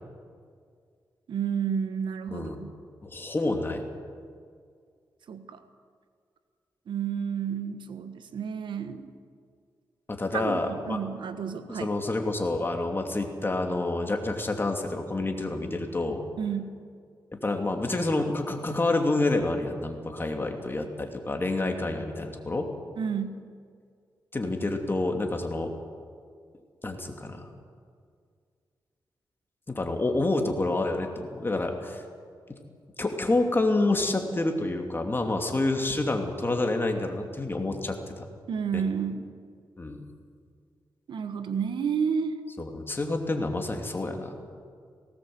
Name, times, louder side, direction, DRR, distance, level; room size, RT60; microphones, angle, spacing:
voice 1, 1.3-2.7 5.3-5.6 6.9-9.1 10.3-11.9 16.4-16.8 23.0-23.4 38.5-39.3 41.1-42.3, right 7 dB, 85° right, 9 dB, 1.3 m, -31 dB
voice 2, 2.3-2.6 3.0-3.8 10.1-11.0 11.7-16.2 17.4-22.7 24.3-25.7 26.8-27.5 29.7-32.0 32.5-32.6 33.0-38.3 38.7-38.8 39.8-40.0 42.6-44.4, left 2 dB, 30° left, 3 dB, 2.7 m, -28 dB
18.0 x 18.0 x 7.9 m, 2.1 s
cardioid pair, 80°, 8 cm